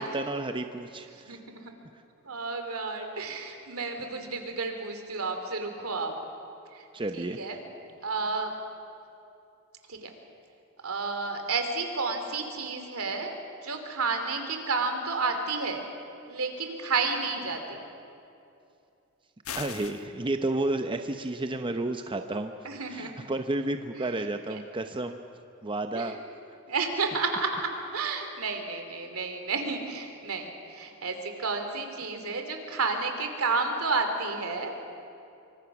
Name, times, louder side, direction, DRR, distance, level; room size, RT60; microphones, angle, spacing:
voice 1, 0.0-1.4 6.9-7.4 19.5-22.5 22.9-25.2 25.6-26.2 26.5-26.6, right 2 dB, 25° right, 7 dB, 0.7 m, -31 dB
voice 2, 1.1-1.7 2.2-6.1 6.7-6.9 7.1-7.6 8.0-8.5 9.9-10.1 10.8-13.3 13.6-15.8 16.3-17.9 22.6-23.1 24.0-24.6 25.9-26.2 26.7-34.7, right 4 dB, 75° right, 5 dB, 2.9 m, -31 dB
sound 1, 19.4-20.0, left 7 dB, 70° left, 1.2 m, -37 dB
26.0 x 24.0 x 6.1 m, 2.6 s
head